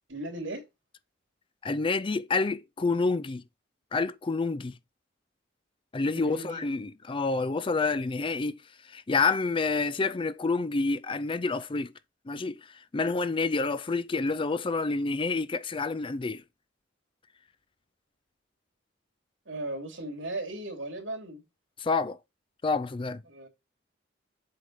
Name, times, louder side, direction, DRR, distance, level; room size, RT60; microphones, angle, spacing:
voice 1, 0.1-0.6 6.1-6.6 19.4-21.4 23.3-23.5, right 2 dB, 90° right, 3.0 m, -37 dB
voice 2, 1.6-3.4 3.9-4.7 5.9-8.6 8.9-11.9 12.3-12.6 12.9-16.4 21.8-22.2 22.6-23.2, left 3 dB, 25° left, 0.4 m, -28 dB
7.6 x 3.6 x 6.5 m
head